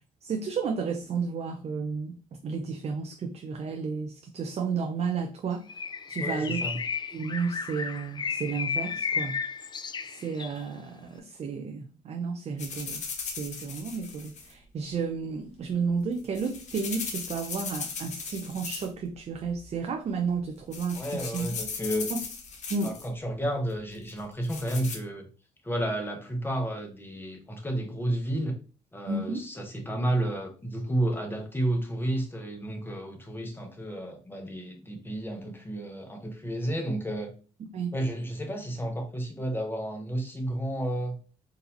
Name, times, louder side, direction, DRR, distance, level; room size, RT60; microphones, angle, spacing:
voice 1, 0.2-2.1 2.4-6.7 7.1-9.4 10.0-13.0 13.2-21.5 22.1-22.2 22.7-22.9 29.1-29.4 37.7-37.9, right 5 dB, 50° right, 3 dB, 0.5 m, -32 dB
Bird, 5.7-10.6, left 6 dB, 30° left, 0.4 m, -33 dB
voice 2, 6.2-6.8 20.9-22.1 22.8-25.3 25.6-28.6 28.9-37.3 37.9-41.2, right 1 dB, 15° left, 3 dB, 1.1 m, -31 dB
sound 1, 12.6-14.5 16.0-19.1 19.3-19.8 20.3-20.4 20.7-23.1 24.1-25.0, left 5 dB, 55° left, 1.0 m, -38 dB
3.9 x 2.7 x 2.6 m, 0.37 s
supercardioid pair, 60°, 14 cm